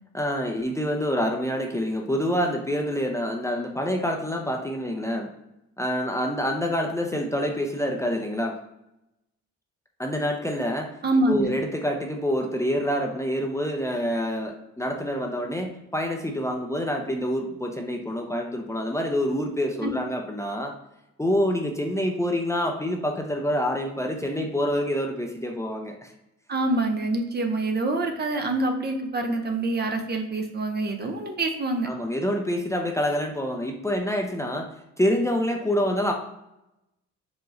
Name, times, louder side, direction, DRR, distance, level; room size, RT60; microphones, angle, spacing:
voice 1, 0.1-5.3 5.8-8.6 10.0-10.9 11.3-20.7 21.2-26.1 31.9-36.1, equal, 10° left, 1 dB, 0.5 m, -27 dB
voice 2, 11.0-11.5 19.8-19.9 26.5-31.9, right 2 dB, 35° right, 4 dB, 0.6 m, -26 dB
4.8 x 3.0 x 2.6 m, 0.87 s
cardioid pair, 90°, 30 cm